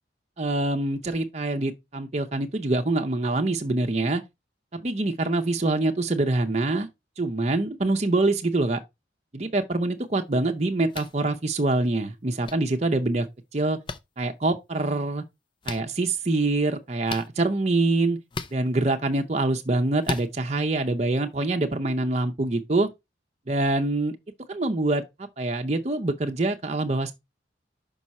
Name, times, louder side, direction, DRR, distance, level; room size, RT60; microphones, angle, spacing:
voice 1, 0.4-4.2 4.7-6.9 7.2-8.8 9.3-13.3 13.5-13.8 14.2-15.2 15.7-18.2 18.5-22.9 23.5-24.2 24.5-25.0 25.4-27.1, right 2 dB, 35° right, 0.7 m, -25 dB
sound 1, 10.9-11.1 12.4-12.5 13.9-14.0 15.6-15.8 17.1-17.3 18.3-18.5 20.0-20.3, left 3 dB, 25° left, 0.5 m, -32 dB
6.0 x 5.3 x 4.2 m
head